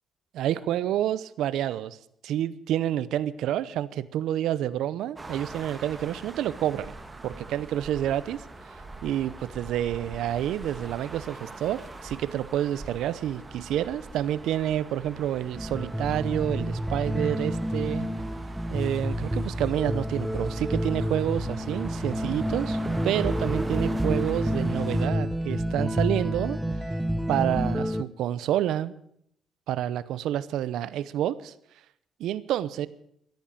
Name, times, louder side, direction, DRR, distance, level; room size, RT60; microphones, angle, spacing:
voice 1, 0.3-2.0 2.2-6.9 7.2-8.4 9.0-18.1 18.7-26.6 27.3-28.9 29.7-31.5 32.2-32.9, right 11 dB, 85° right, 17 dB, 0.7 m, -28 dB
sound 1, 5.2-25.1, right 2 dB, 20° right, 2.0 m, -41 dB
sound 2, 15.6-28.0, equal, 5° right, 1.0 m, -29 dB
13.5 x 11.0 x 9.1 m, 0.71 s
cardioid pair, 90°, 0 cm